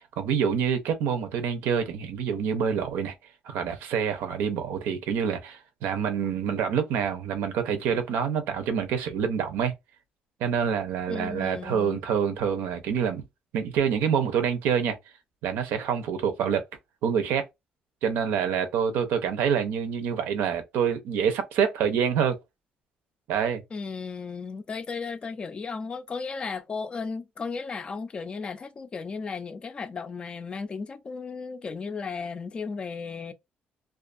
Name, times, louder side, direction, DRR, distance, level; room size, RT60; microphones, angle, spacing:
voice 1, 0.0-3.1 3.4-9.7 10.4-13.2 13.5-15.0 15.4-16.6 17.0-17.4 18.0-22.4 23.3-23.6, right 7 dB, 90° right, 0.6 m, -26 dB
voice 2, 11.1-12.0 23.7-33.3, left 5 dB, 30° left, 0.4 m, -35 dB
2.4 x 2.4 x 2.5 m
cardioid pair, 125°, 3 cm